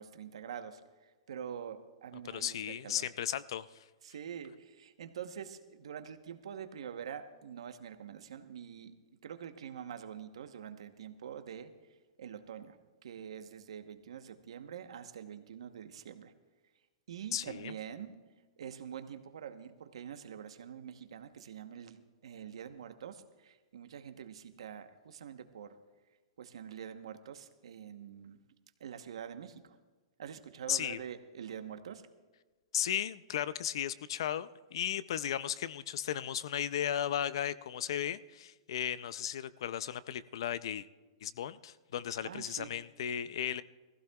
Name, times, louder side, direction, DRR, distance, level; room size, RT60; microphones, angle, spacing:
voice 1, 0.0-3.0 4.0-8.9 9.2-11.7 12.2-12.8 13.0-16.3 17.1-18.1 18.6-25.8 26.4-28.4 28.8-29.8 30.2-32.0 42.2-42.7, right 8 dB, 80° right, 8 dB, 1.0 m, -45 dB
voice 2, 2.3-3.7 17.3-17.7 30.7-31.0 32.7-40.9 41.2-43.6, left 10 dB, 60° left, 17 dB, 0.4 m, -35 dB
20.5 x 15.5 x 2.3 m, 1.3 s
hypercardioid pair, 170°, 3 cm